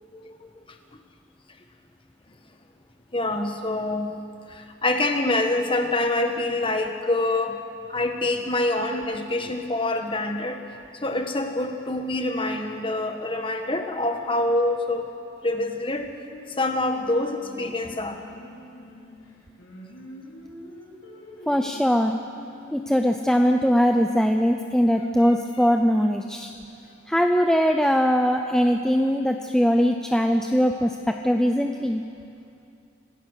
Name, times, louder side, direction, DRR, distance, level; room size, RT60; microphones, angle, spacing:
voice 1, 0.1-0.8 3.1-4.2 4.5-7.6 7.9-10.6 10.9-15.1 15.4-16.1 16.5-18.2 25.2-25.3, left 2 dB, 25° left, 5 dB, 1.4 m, -26 dB
Singing, 16.3-23.6, left 1 dB, 85° left, 4.7 m, -45 dB
voice 2, 21.5-22.2 22.7-26.5 27.1-32.0, equal, 5° left, 4 dB, 0.5 m, -21 dB
26.5 x 16.5 x 6.5 m, 2.6 s
head